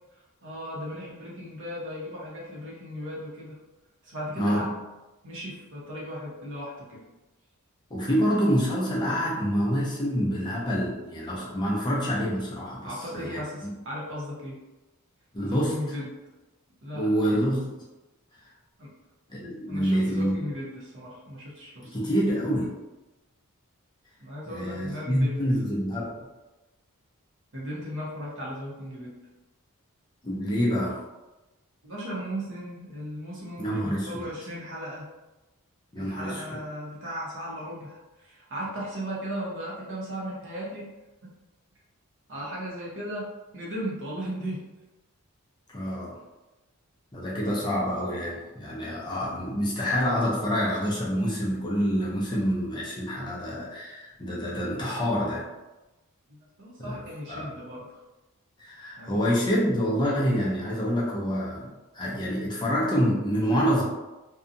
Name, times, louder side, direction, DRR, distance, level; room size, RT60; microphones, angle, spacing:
voice 1, 0.4-3.5 4.0-4.6 5.2-7.0 12.8-14.6 15.4-16.1 16.8-17.2 18.8-18.9 19.7-22.0 24.2-25.4 27.5-29.2 31.8-35.0 36.0-40.9 42.3-44.6 56.3-57.9 59.0-59.2, equal, 60° right, -5 dB, 0.9 m, -36 dB
voice 2, 4.4-4.7 7.9-13.7 15.3-15.8 16.9-17.7 19.3-20.4 21.9-22.7 24.5-26.3 30.2-31.0 33.6-34.2 35.9-36.5 45.7-46.1 47.1-55.5 56.8-57.5 58.6-63.8, equal, 20° left, -5 dB, 0.5 m, -27 dB
2.7 x 2.3 x 2.6 m, 1.1 s
head